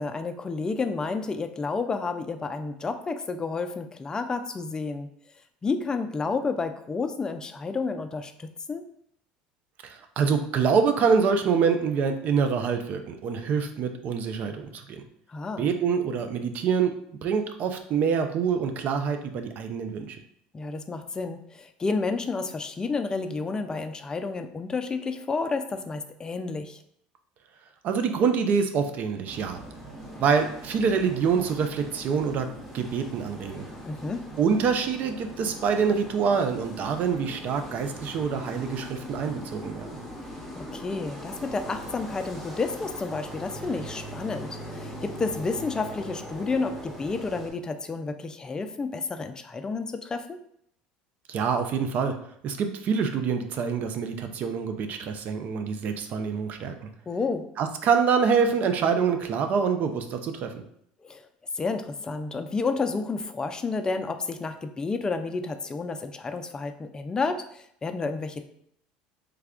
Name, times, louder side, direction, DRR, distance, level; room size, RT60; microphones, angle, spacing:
voice 1, 0.0-5.1 5.6-8.8 15.3-15.7 20.5-26.8 33.9-34.2 40.6-50.4 57.1-57.5 61.0-61.2 61.6-68.4, left 4 dB, 20° left, 8 dB, 0.4 m, -30 dB
voice 2, 9.8-15.0 15.6-20.2 27.8-29.6 30.2-32.5 32.7-33.7 34.4-40.0 51.3-52.2 52.4-56.9 57.6-60.6, right 6 dB, 50° right, 7 dB, 0.5 m, -26 dB
sound 1, 29.3-47.5, equal, ahead, 1.0 m, -40 dB
3.3 x 2.3 x 3.5 m, 0.69 s
supercardioid pair, 95°, 3 cm